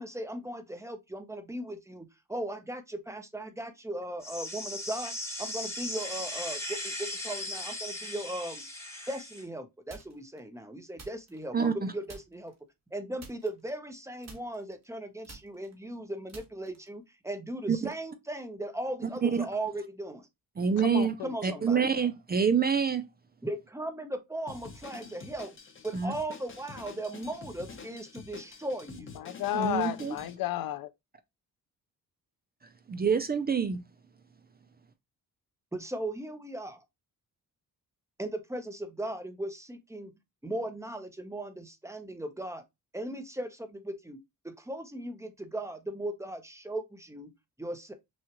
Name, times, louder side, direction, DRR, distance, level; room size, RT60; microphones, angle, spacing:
voice 1, 0.0-5.1 5.4-8.6 9.1-12.5 12.9-20.3 21.2-21.8 23.4-25.5 25.8-29.1 35.7-36.8 38.2-40.1 40.4-42.6 42.9-44.2 44.4-47.3 47.6-47.9, right 1 dB, 10° right, 0.8 m, -37 dB
sound 1, 4.2-9.4, left 1 dB, 10° left, 1.2 m, -38 dB
sound 2, 9.9-10.4 11.0-11.8 12.1-12.6 13.2-14.0 14.2-17.0, right 4 dB, 50° right, 1.6 m, -51 dB
voice 2, 11.5-11.9 17.7-17.8 19.0-19.5 20.6-21.1 21.4-23.0 25.9-26.1 29.5-30.2 32.9-33.8, right 6 dB, 25° right, 0.5 m, -26 dB
voice 3, 20.8-21.6 29.1-30.9, left 12 dB, 75° left, 0.5 m, -33 dB
Drum kit, 24.5-30.3, left 4 dB, 35° left, 0.9 m, -47 dB
6.1 x 2.4 x 2.9 m
cardioid pair, 100°, 35 cm